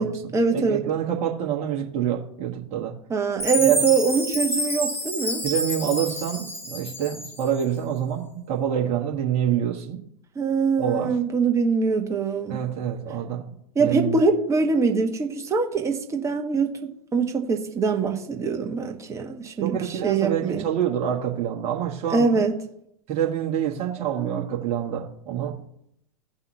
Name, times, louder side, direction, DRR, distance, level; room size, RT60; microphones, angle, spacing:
voice 1, 0.0-0.8 3.1-5.4 10.3-12.6 13.7-16.7 17.1-20.7 22.1-22.5 24.0-24.4, right 4 dB, 15° right, 4 dB, 1.2 m, -23 dB
voice 2, 0.5-3.0 3.6-3.8 5.4-10.0 10.8-11.1 12.5-13.5 13.8-14.2 19.6-22.4 23.1-25.6, right 9 dB, 35° right, -1 dB, 1.4 m, -26 dB
Chime, 3.4-7.6, equal, 10° left, 1.7 m, -29 dB
16.5 x 5.6 x 2.8 m, 0.74 s
figure-of-eight pair, 100°, 18 cm